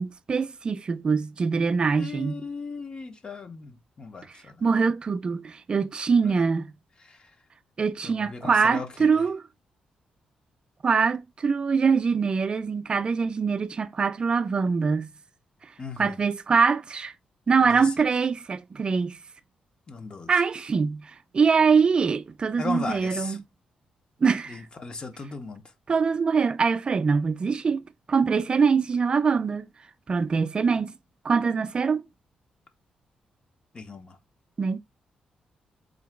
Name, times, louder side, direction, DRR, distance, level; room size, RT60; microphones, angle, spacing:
voice 1, 0.0-2.3 4.6-6.7 7.8-9.4 10.8-15.1 16.0-17.1 17.5-19.2 20.3-23.4 24.2-24.6 25.9-29.7 30.1-30.9 31.2-32.0 34.6-34.8, right 5 dB, 35° right, 0.4 m, -23 dB
voice 2, 2.0-4.6 6.2-6.3 7.1-7.3 8.0-9.2 15.8-16.2 17.6-17.9 19.9-20.3 22.6-23.4 24.5-25.6 33.7-34.2, left 4 dB, 35° left, 0.8 m, -37 dB
3.8 x 2.9 x 3.5 m
cardioid pair, 90°, 3 cm